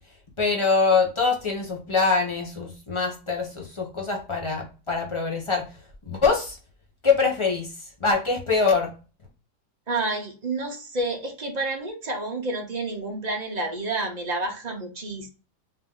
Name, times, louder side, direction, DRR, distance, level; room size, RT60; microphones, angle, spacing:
voice 1, 0.4-5.6 6.1-6.6 7.0-7.7 8.0-8.9, left 4 dB, 25° left, 0 dB, 0.6 m, -24 dB
voice 2, 9.9-15.3, right 2 dB, 50° right, 2 dB, 0.5 m, -29 dB
3.9 x 2.6 x 3.6 m, 0.33 s
omnidirectional pair, 1.8 m